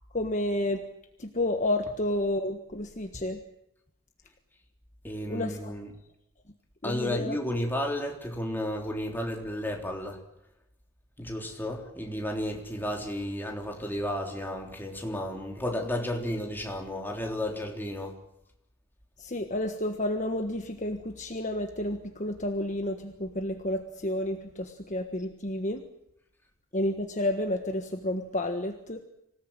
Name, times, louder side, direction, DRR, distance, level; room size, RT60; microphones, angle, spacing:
voice 1, 0.1-0.8 1.2-3.4 5.3-5.7 6.8-7.3 19.2-25.8 26.7-29.0, left 1 dB, 35° left, 1.5 m, -30 dB
voice 2, 5.0-5.9 6.8-10.2 11.2-18.2, left 1 dB, 10° left, 3.5 m, -33 dB
26.0 x 18.0 x 9.0 m
head